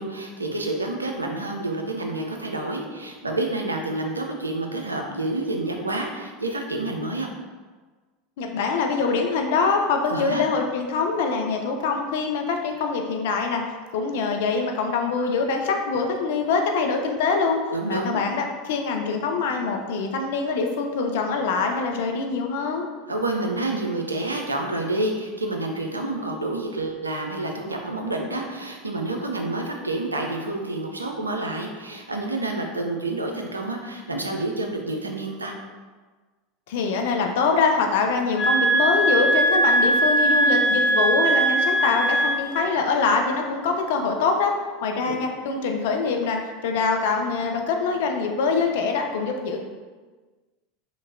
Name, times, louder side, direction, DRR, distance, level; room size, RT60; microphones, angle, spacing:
voice 1, 0.0-7.3 10.1-10.4 17.7-18.2 23.1-35.5 45.0-45.1, right 2 dB, 85° right, 2 dB, 0.3 m, -28 dB
voice 2, 8.4-13.6 13.9-17.6 17.9-22.8 36.7-44.5 44.8-49.6, left 4 dB, 60° left, 3 dB, 0.4 m, -24 dB
sound 1, 38.4-42.7, right 1 dB, 45° left, 1.3 m, -20 dB
2.9 x 2.7 x 2.5 m, 1.4 s
figure-of-eight pair, 80°, 0 cm